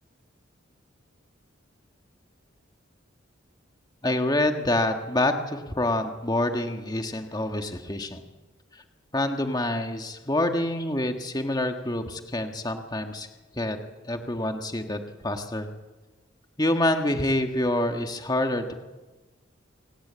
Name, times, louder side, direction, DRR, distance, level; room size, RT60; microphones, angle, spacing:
voice 1, 4.0-8.2 8.7-8.8 9.1-13.3 13.6-13.8 14.0-15.7 16.6-18.7, left 1 dB, 20° left, 5 dB, 1.5 m, -27 dB
26.5 x 18.0 x 8.6 m, 1.2 s
head